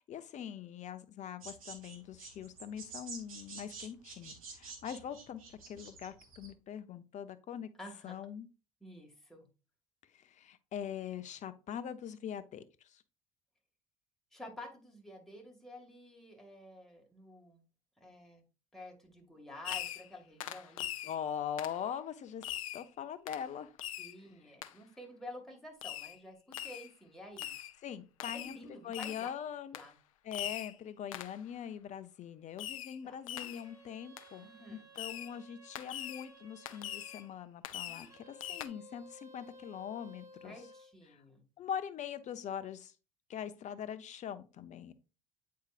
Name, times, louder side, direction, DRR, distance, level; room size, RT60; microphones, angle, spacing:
voice 1, 0.0-7.7 8.0-8.5 10.1-13.0 21.0-23.7 24.4-24.5 27.8-29.8 30.2-40.6 41.1-41.2 41.6-42.9 43.3-44.9, left 9 dB, 45° left, 12 dB, 0.7 m, -42 dB
sound 1, 1.4-6.5, right 4 dB, 85° right, 1.2 m, -49 dB
voice 2, 7.8-8.1 8.8-9.5 14.3-17.6 18.0-18.5 18.7-21.1 24.0-27.6 28.3-29.3 29.7-30.0 33.0-33.2 34.4-34.9 40.4-41.4, left 1 dB, ahead, 1 dB, 2.0 m, -50 dB
Fireworks, 19.6-20.1 20.4-21.2 21.6-21.8 22.4-22.9 23.3-23.5 23.8-24.2 24.6-24.7 25.8-26.2 26.5-26.9 27.4-27.7 28.2-28.6 28.9-29.3 29.7-29.9 30.3-30.8 31.1-31.4 32.6-33.0 33.3-33.7 34.2-34.3 35.0-35.3 35.8-36.3 36.7-37.2 37.6-38.1 38.4-38.7, left 12 dB, 80° left, 0.4 m, -41 dB
sound 2, 33.3-37.3 37.9-40.9, equal, 20° right, 2.0 m, -57 dB
8.1 x 4.7 x 2.5 m, 0.33 s
hypercardioid pair, 60°, 17 cm